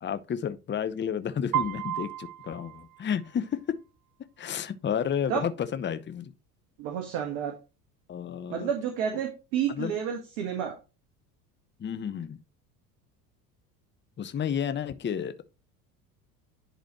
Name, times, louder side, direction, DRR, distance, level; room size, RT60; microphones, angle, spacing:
voice 1, 0.0-3.6 4.4-6.3 8.1-8.7 9.8-9.9 11.8-12.4 14.2-15.3, left 8 dB, 25° left, 0.8 m, -31 dB
Piano, 1.5-3.6, right 13 dB, 40° right, 0.8 m, -33 dB
voice 2, 6.8-7.5 8.5-10.7, right 8 dB, 65° right, 1.7 m, -30 dB
10.5 x 4.1 x 3.0 m
hypercardioid pair, 70°, 48 cm